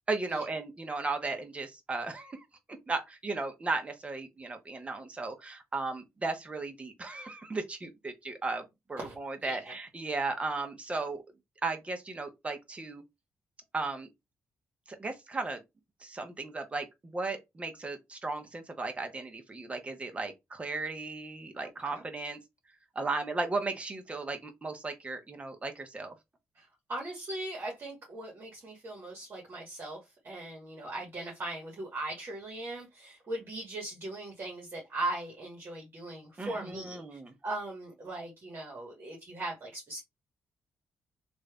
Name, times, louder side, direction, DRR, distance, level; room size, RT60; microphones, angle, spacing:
voice 1, 0.1-2.4 2.9-11.2 11.6-13.0 13.7-14.1 14.9-15.6 16.0-22.4 22.9-26.1 36.4-37.3, right 3 dB, 25° right, 0.9 m, -36 dB
voice 2, 9.4-9.7 21.8-22.0 26.5-40.0, right 2 dB, 40° right, 1.5 m, -39 dB
3.1 x 2.6 x 3.4 m
cardioid pair, 115°, 5 cm